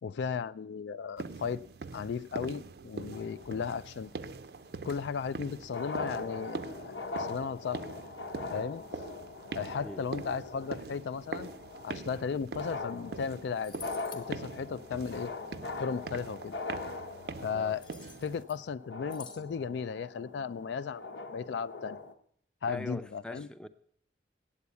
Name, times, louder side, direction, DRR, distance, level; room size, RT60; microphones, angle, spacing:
voice 1, 0.0-1.6 1.9-4.1 4.8-6.6 7.2-7.9 8.5-8.8 9.5-11.5 11.8-13.8 14.1-15.3 15.8-16.5 17.4-17.8 18.2-21.0 21.3-22.0 22.6-23.5, left 6 dB, 75° left, 0.3 m, -35 dB
sound 1, 1.2-18.4, right 4 dB, 60° right, 0.5 m, -43 dB
sound 2, 3.1-4.2 5.4-5.5 5.6-22.1, left 3 dB, 90° left, 1.0 m, -42 dB
sound 3, 13.2-13.3 13.5-14.3 17.8-18.7 19.1-19.4, left 5 dB, 25° left, 1.0 m, -49 dB
voice 2, 22.7-23.7, left 1 dB, 5° left, 0.5 m, -42 dB
8.5 x 8.2 x 8.1 m
head